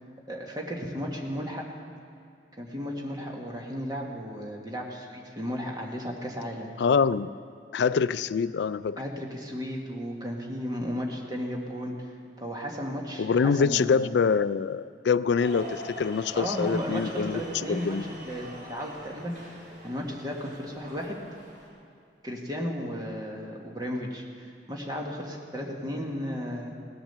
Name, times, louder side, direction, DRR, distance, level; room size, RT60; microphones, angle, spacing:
voice 1, 0.3-1.7 2.6-6.7 9.0-11.9 12.4-14.1 16.3-19.3 19.8-21.2 22.2-26.8, equal, 20° right, -1 dB, 1.6 m, -34 dB
voice 2, 6.8-7.3 7.7-9.0 13.2-17.4 17.7-18.0, left 5 dB, 70° left, 15 dB, 0.3 m, -25 dB
sound 1, 15.3-21.7, equal, 50° right, 3.8 m, -43 dB
17.5 x 8.8 x 6.8 m, 2.4 s
head